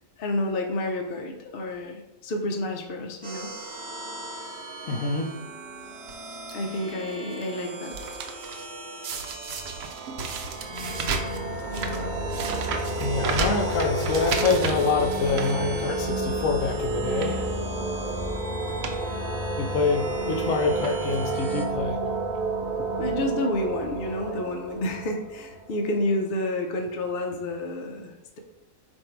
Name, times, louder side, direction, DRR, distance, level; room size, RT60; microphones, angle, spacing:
voice 1, 0.2-3.6 6.5-8.2 22.6-28.4, left 1 dB, 55° left, 3 dB, 0.8 m, -30 dB
sound 1, 3.2-21.7, right 2 dB, 55° right, 1.1 m, -39 dB
voice 2, 4.8-5.3 11.9-12.2 13.0-17.6 19.6-22.0, left 4 dB, 75° left, 3 dB, 1.0 m, -26 dB
sound 2, 6.1-6.5 7.1-7.4 7.7-8.7 9.0-16.1 16.5-16.6 17.1-17.4 18.3-18.4 18.6-19.0 19.3-19.4 20.3-20.5 20.8-21.3 22.1-22.2 22.3-22.4, right 4 dB, 85° right, 1.0 m, -34 dB
sound 3, 10.5-26.1, right 2 dB, 40° right, 0.6 m, -30 dB
4.4 x 2.6 x 4.5 m, 0.92 s
omnidirectional pair, 1.4 m